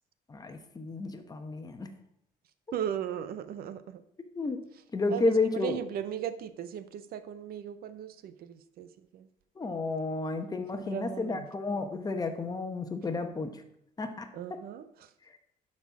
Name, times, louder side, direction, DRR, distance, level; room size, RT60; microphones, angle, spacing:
voice 1, 0.3-1.9 4.3-4.6 4.9-5.8 9.6-13.6 14.0-14.3, left 3 dB, 20° left, 6 dB, 1.0 m, -31 dB
voice 2, 2.7-4.0 5.1-9.3 10.7-11.5 14.3-15.1, right 9 dB, 65° right, 13 dB, 0.6 m, -37 dB
11.5 x 4.3 x 4.7 m, 0.76 s
cardioid pair, 110°, 17 cm